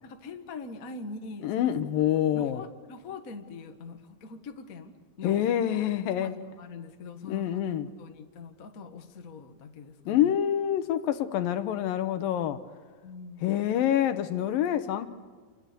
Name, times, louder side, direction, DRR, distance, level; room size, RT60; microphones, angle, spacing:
voice 1, 0.0-1.7 2.3-5.4 6.2-7.7 8.0-10.3 13.0-13.7, left 4 dB, 55° left, 0.9 m, -43 dB
voice 2, 1.4-2.6 5.2-6.3 7.3-7.9 10.1-12.6 13.4-15.1, left 11 dB, 75° left, 2.7 m, -26 dB
28.5 x 25.5 x 6.9 m
omnidirectional pair, 4.3 m